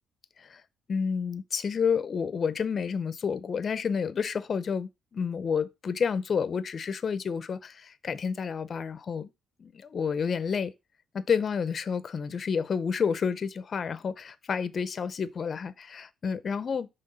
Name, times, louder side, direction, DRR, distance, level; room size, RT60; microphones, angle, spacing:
voice 1, 0.9-9.3 9.6-10.7 11.1-16.9, left 6 dB, 45° left, 0.7 m, -30 dB
5.8 x 3.5 x 5.5 m
cardioid pair, 90°, 0 cm